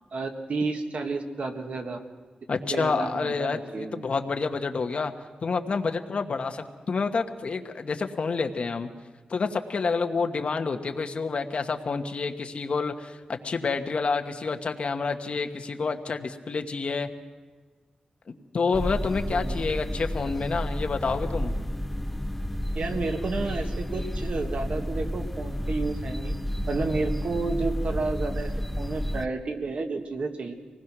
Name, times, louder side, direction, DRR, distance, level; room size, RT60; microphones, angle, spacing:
voice 1, 0.1-2.0 2.7-4.0 19.3-19.6 22.8-26.3 26.7-28.5 28.8-30.5, right 3 dB, 55° right, 5 dB, 1.7 m, -31 dB
voice 2, 2.5-5.1 5.4-8.9 9.3-17.1 18.3-21.5, left 4 dB, 50° left, 5 dB, 1.3 m, -28 dB
sound 1, 18.7-29.3, equal, 5° left, 0.5 m, -31 dB
24.5 x 19.5 x 6.1 m, 1.4 s
wide cardioid pair, 150°, 3 cm